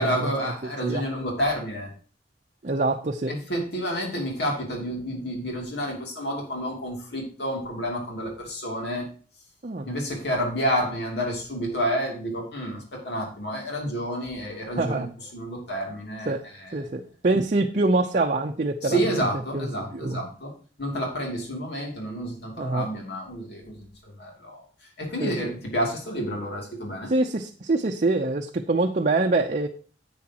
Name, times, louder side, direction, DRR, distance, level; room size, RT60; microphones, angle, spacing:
voice 1, 0.0-1.9 3.3-9.1 9.9-15.0 15.3-16.8 18.8-20.5 20.8-24.6 25.0-27.1, equal, 65° left, 0 dB, 2.8 m, -29 dB
voice 2, 2.6-3.3 9.6-9.9 14.8-15.1 16.3-16.4 16.7-19.2 19.5-19.7 19.9-20.2 22.6-22.9 25.2-25.3 27.1-29.7, right 2 dB, 45° right, 2 dB, 0.6 m, -25 dB
10.0 x 8.6 x 2.9 m, 0.40 s
head